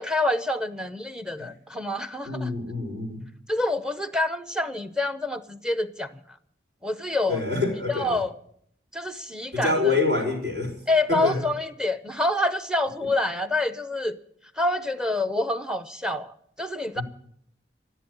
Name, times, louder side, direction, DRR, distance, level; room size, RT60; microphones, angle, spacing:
voice 1, 0.0-2.5 3.5-6.1 6.8-7.4 7.9-8.3 8.9-10.0 10.9-14.2 14.6-16.3 16.6-17.0, left 2 dB, 5° right, 12 dB, 0.7 m, -27 dB
voice 2, 2.3-3.3 7.3-8.2 9.5-10.7 11.1-11.4 16.9-17.0, left 3 dB, 70° right, -3 dB, 5.3 m, -26 dB
14.5 x 7.9 x 9.9 m, 0.67 s
head